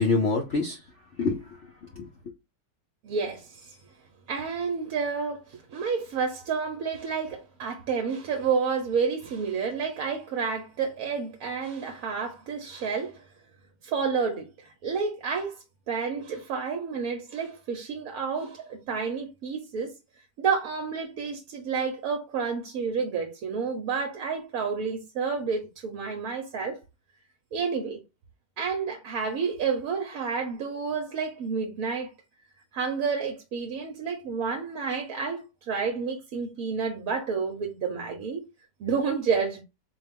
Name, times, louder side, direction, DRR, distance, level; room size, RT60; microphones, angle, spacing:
voice 1, 0.0-2.3, left 3 dB, 60° left, 0.8 m, -28 dB
voice 2, 3.0-3.8 4.3-13.2 13.8-15.6 15.9-19.9 20.4-26.8 27.5-28.0 28.6-32.1 32.7-38.4 38.8-39.6, right 5 dB, 65° right, 1.1 m, -30 dB
4.2 x 2.3 x 3.4 m
omnidirectional pair, 1.9 m